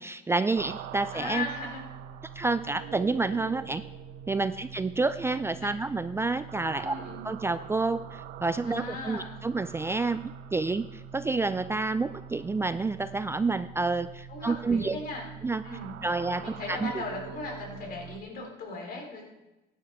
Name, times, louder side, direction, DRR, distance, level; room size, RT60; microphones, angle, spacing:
voice 1, 0.0-1.5 2.4-3.8 4.3-6.9 7.2-15.0 15.4-15.6 16.0-16.4 16.7-16.9, right 3 dB, 15° right, 12 dB, 0.4 m, -29 dB
sound 1, 0.6-18.2, right 9 dB, 80° right, 0.6 m, -44 dB
voice 2, 1.1-1.8 5.6-5.7 6.8-7.2 8.7-9.5 14.3-15.3 15.6-15.9 16.4-19.2, left 3 dB, 60° left, 1 dB, 3.6 m, -37 dB
15.5 x 10.0 x 3.6 m, 1.0 s
cardioid pair, 110°, 17 cm